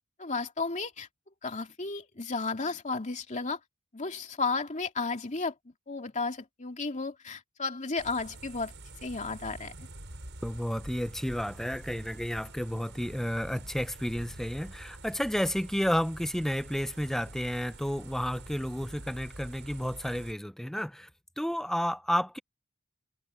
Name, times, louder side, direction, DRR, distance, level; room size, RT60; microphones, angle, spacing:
voice 1, 0.2-1.1 1.4-3.6 3.9-5.5 5.9-8.7 9.0-9.9, left 4 dB, 35° left, 2.6 m, -33 dB
sound 1, 8.0-20.3, right 1 dB, 60° right, 7.5 m, -46 dB
voice 2, 10.4-21.1 21.4-22.4, equal, ahead, 0.6 m, -31 dB
head